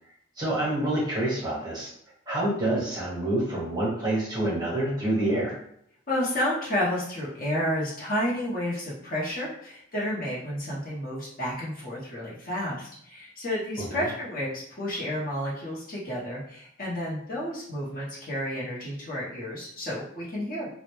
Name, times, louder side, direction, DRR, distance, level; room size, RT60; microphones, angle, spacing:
voice 1, 0.4-1.9 2.3-5.6 13.8-14.1, right 1 dB, 20° right, -6 dB, 0.8 m, -27 dB
voice 2, 6.1-20.7, left 1 dB, 45° left, -6 dB, 0.7 m, -31 dB
2.1 x 2.0 x 2.9 m, 0.70 s
head